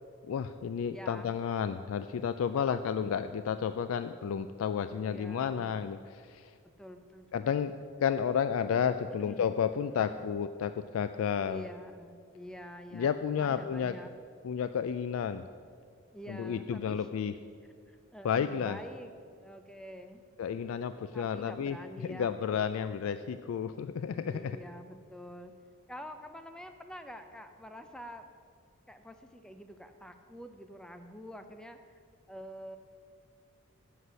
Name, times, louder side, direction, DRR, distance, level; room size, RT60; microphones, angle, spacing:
voice 1, 0.2-6.5 7.3-7.7 8.0-11.6 12.9-14.0 14.4-15.4 16.3-17.3 18.2-18.8 20.4-21.8 22.0-24.5, left 7 dB, 75° left, 11 dB, 0.3 m, -31 dB
voice 2, 0.9-1.4 5.0-5.8 6.8-7.7 9.2-9.5 9.9-10.2 11.4-14.1 16.1-17.1 17.9-20.2 21.1-22.4 24.3-25.5 25.9-28.2 28.9-31.9 32.3-32.8, equal, 5° left, 7 dB, 0.5 m, -47 dB
8.1 x 7.8 x 6.3 m, 2.2 s
head